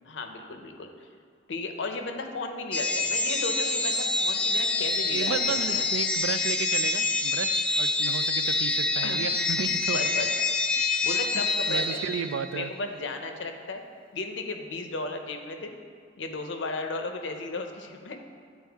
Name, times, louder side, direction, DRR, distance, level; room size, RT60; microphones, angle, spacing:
voice 1, 0.1-0.9 1.5-5.9 9.0-9.2 9.9-10.3 11.0-12.0 12.5-13.8 14.1-15.7 16.2-18.2, left 3 dB, 70° left, 5 dB, 0.6 m, -35 dB
sound 1, 2.7-12.5, left 3 dB, 5° left, 0.5 m, -26 dB
voice 2, 5.1-10.0 10.8-10.9 11.7-12.7, right 7 dB, 80° right, 12 dB, 0.3 m, -33 dB
9.6 x 4.2 x 3.5 m, 2.1 s
head